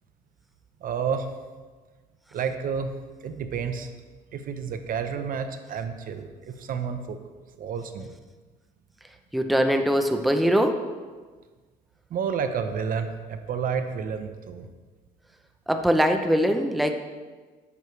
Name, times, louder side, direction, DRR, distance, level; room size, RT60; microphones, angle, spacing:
voice 1, 0.8-1.3 2.3-2.9 3.2-3.9 4.3-7.2 7.6-8.1 12.1-14.7, right 6 dB, 55° right, 8 dB, 0.9 m, -30 dB
voice 2, 9.3-10.8 15.7-17.0, equal, ahead, 5 dB, 0.7 m, -22 dB
11.5 x 8.5 x 3.3 m, 1.4 s
cardioid pair, 110°, 17 cm